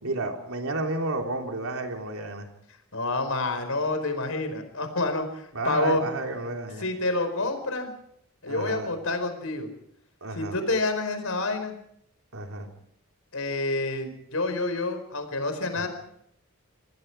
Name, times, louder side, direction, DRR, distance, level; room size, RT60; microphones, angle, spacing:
voice 1, 0.0-2.5 5.5-6.8 8.5-8.9 10.2-10.6 12.3-12.7 15.7-15.9, right 2 dB, 80° right, 2 dB, 3.6 m, -31 dB
voice 2, 2.9-6.0 6.8-7.9 8.4-9.7 10.3-11.7 13.3-15.9, left 2 dB, 75° left, 8 dB, 4.9 m, -28 dB
27.5 x 20.0 x 4.8 m, 0.71 s
head